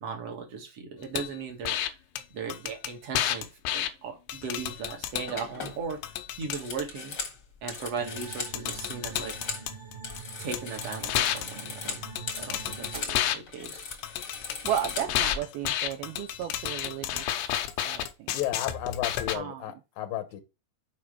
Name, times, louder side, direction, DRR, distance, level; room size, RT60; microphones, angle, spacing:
voice 1, 0.0-1.8 2.3-3.5 3.7-6.0 6.4-7.1 7.6-9.3 10.4-12.0 12.4-13.9, right 5 dB, 55° right, 1.8 m, -37 dB
sound 1, 1.2-1.3 1.7-1.9 2.2-2.3 2.5-3.9 4.3-5.3 5.7-6.8 8.2-8.3 8.5-10.2 10.5-13.4 13.7-19.4, left 11 dB, 90° left, 3.1 m, -31 dB
sound 2, 4.8-4.9 5.3-9.7 9.9-13.2 13.5-15.4, left 5 dB, 50° left, 1.2 m, -39 dB
sound 3, 8.0-13.0, right 6 dB, 20° right, 1.3 m, -44 dB
voice 2, 14.6-17.4 17.8-18.4 19.3-19.6, right 10 dB, 80° right, 2.3 m, -34 dB
voice 3, 18.3-20.4, left 12 dB, 75° left, 2.2 m, -33 dB
7.3 x 5.2 x 4.8 m
omnidirectional pair, 4.9 m